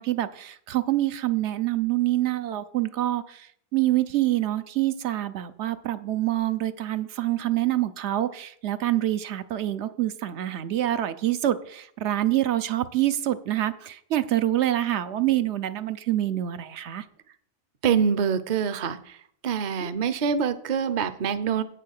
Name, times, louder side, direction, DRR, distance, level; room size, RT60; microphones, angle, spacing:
voice 1, 0.0-17.1 19.8-19.9, right 14 dB, 80° right, 11 dB, 0.9 m, -26 dB
voice 2, 17.8-19.2 19.4-21.6, right 7 dB, 50° right, 12 dB, 0.7 m, -25 dB
8.3 x 6.6 x 6.4 m, 0.63 s
omnidirectional pair, 1.1 m